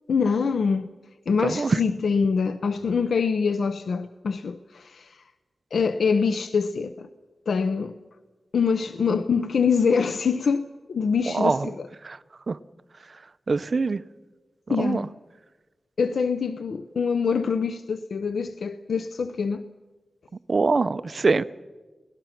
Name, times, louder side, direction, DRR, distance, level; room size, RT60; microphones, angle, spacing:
voice 1, 0.1-0.9 1.3-5.2 5.7-7.1 7.5-8.0 8.5-11.9 14.7-15.1 16.0-19.6, left 5 dB, 85° left, 0.6 m, -24 dB
voice 2, 1.4-1.8 11.3-11.7 12.0-12.2 12.5-12.6 13.5-14.0 14.7-15.0 20.5-21.4, right 4 dB, 50° right, 0.6 m, -23 dB
28.5 x 18.0 x 5.9 m
wide cardioid pair, 90°, 0 cm